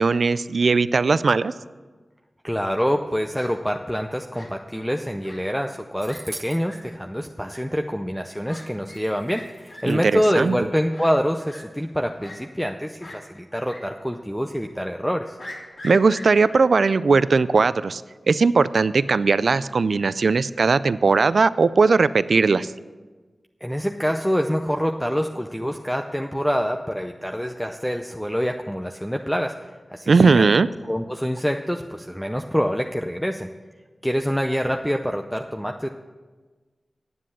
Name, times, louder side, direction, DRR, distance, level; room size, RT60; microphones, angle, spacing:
voice 1, 0.0-1.5 9.8-10.6 15.8-18.0 18.3-22.7 30.1-30.7, right 4 dB, 80° right, 16 dB, 0.3 m, -18 dB
voice 2, 2.4-15.4 23.6-30.4 30.9-33.5 34.0-35.9, equal, 5° left, 4 dB, 0.6 m, -26 dB
Fowl, 2.5-2.9 3.3-3.5 4.3-4.8 5.2-5.4 5.7-5.8 6.0-6.2 6.6-6.7 7.5-7.6 8.5-8.6 8.9-9.0 9.3-9.4 9.7-9.8 10.2-10.3 10.9-11.1 11.5-11.6 12.2-12.7 13.0-13.2 13.7-13.8 14.1-14.2 15.4-16.6, left 1 dB, 75° left, 3.5 m, -41 dB
sound 1, 6.0-6.6 8.6-8.7 8.9-10.7, right 2 dB, 25° right, 1.4 m, -42 dB
9.5 x 7.6 x 8.5 m, 1.3 s
wide cardioid pair, 70°, 0 cm